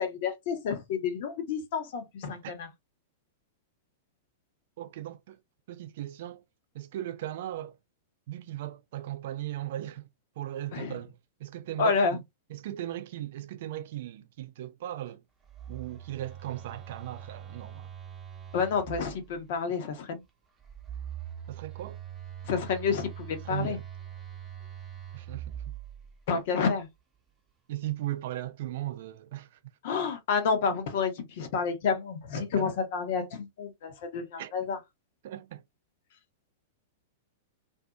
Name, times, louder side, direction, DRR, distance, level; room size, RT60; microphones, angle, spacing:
voice 1, 0.0-2.7 10.7-11.0 11.8-12.2 18.5-20.2 22.5-23.8 26.3-26.9 29.8-34.8, left 5 dB, 55° left, 0.9 m, -29 dB
voice 2, 4.8-5.4 5.7-6.4 6.7-7.7 8.3-10.1 10.4-11.1 11.4-12.2 12.5-15.2 15.7-17.9 21.5-22.0 23.4-23.8 25.1-25.8 27.7-29.6 32.4-32.7 34.4-34.5 35.2-35.6, right 13 dB, 60° right, 0.5 m, -37 dB
Telephone, 15.4-19.5 20.6-26.3, right 10 dB, 15° right, 0.8 m, -43 dB
2.6 x 2.6 x 2.3 m
hypercardioid pair, 100°, 0 cm